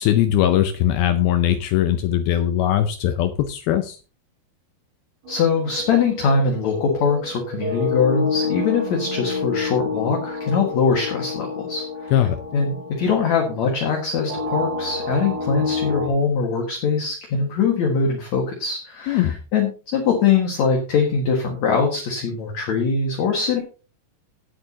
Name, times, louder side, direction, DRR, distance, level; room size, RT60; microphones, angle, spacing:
voice 1, 0.0-4.0 12.1-12.4 19.1-19.4, left 11 dB, 85° left, 9 dB, 2.1 m, -20 dB
sound 1, 5.2-16.1, left 4 dB, 80° right, 5.8 m, -29 dB
voice 2, 5.3-12.1 12.5-23.6, left 5 dB, 55° left, 1 dB, 2.2 m, -22 dB
18.0 x 8.1 x 2.8 m, 0.35 s
omnidirectional pair, 5.2 m